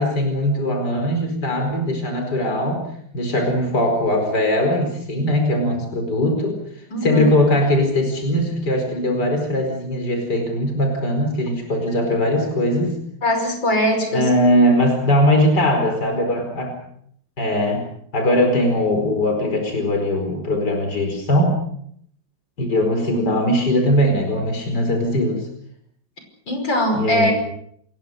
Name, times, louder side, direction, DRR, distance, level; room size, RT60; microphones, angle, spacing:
voice 1, 0.0-2.8 3.1-13.0 14.1-16.7 17.4-17.8 18.1-21.6 22.6-25.5 26.9-27.3, left 1 dB, 60° left, 4 dB, 5.3 m, -20 dB
voice 2, 6.9-7.3 13.2-14.3 26.5-27.3, equal, 85° left, 5 dB, 6.1 m, -21 dB
27.5 x 22.0 x 6.7 m, 0.68 s
omnidirectional pair, 2.0 m